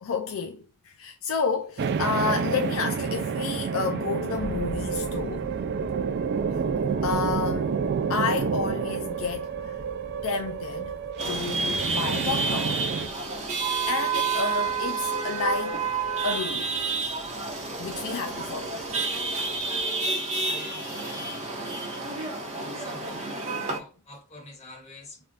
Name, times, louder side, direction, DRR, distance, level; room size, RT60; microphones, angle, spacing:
voice 1, 0.0-5.5 7.0-7.7 8.1-9.8 10.2-11.0 11.2-12.7 13.9-15.8 16.2-16.7 17.8-18.8, left 5 dB, 65° left, 0.4 m, -30 dB
sound 1, 1.8-13.1, right 6 dB, 50° right, 0.3 m, -29 dB
sound 2, 4.3-19.8, equal, 50° left, 2.0 m, -46 dB
Chatter / Vehicle horn car horn honking / Traffic noise roadway noise, 11.2-23.8, right 4 dB, 30° right, 1.0 m, -29 dB
voice 2, 20.2-21.7 22.1-22.4 22.7-23.3 23.5-25.3, left 2 dB, 30° left, 1.5 m, -48 dB
3.4 x 2.4 x 3.9 m
head